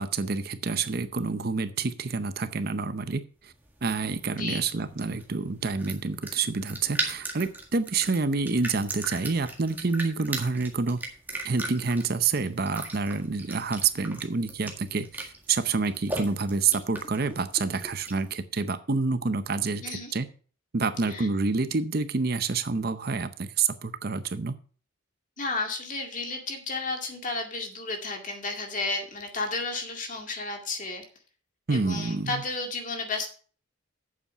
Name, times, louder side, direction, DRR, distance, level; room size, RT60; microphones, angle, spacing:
voice 1, 0.0-3.5 3.8-11.0 11.4-20.3 20.7-24.6 31.7-32.4, right 4 dB, 50° right, 11 dB, 0.7 m, -28 dB
sound 1, 3.5-18.3, right 2 dB, 10° right, 1.8 m, -39 dB
voice 2, 25.4-31.0 31.7-33.3, left 3 dB, 40° left, 3 dB, 2.0 m, -32 dB
8.6 x 7.3 x 5.4 m, 0.41 s
head